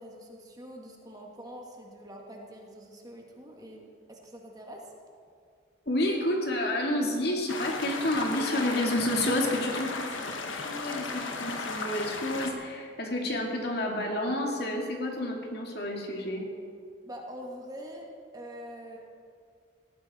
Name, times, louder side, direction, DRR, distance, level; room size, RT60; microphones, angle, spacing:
voice 1, 0.0-4.9 17.0-19.0, equal, 20° right, 0 dB, 1.9 m, -44 dB
voice 2, 5.9-16.5, left 1 dB, 55° left, 1 dB, 2.3 m, -30 dB
sound 1, 7.5-12.5, left 3 dB, 90° left, 1.5 m, -35 dB
18.5 x 14.5 x 4.3 m, 2.3 s
head